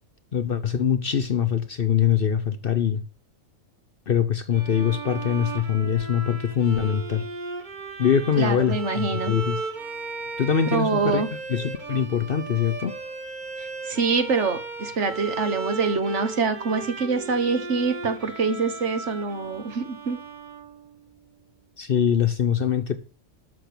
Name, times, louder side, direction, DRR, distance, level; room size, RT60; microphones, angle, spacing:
voice 1, 0.3-3.0 4.1-7.3 8.0-9.6 10.4-11.2 11.5-13.0 21.8-23.0, left 8 dB, 50° left, 0.8 m, -23 dB
Bowed string instrument, 4.5-21.1, right 3 dB, 35° right, 1.7 m, -36 dB
voice 2, 8.4-9.3 10.7-11.3 13.6-20.2, right 4 dB, 60° right, 1.6 m, -25 dB
12.5 x 5.9 x 6.8 m
omnidirectional pair, 1.4 m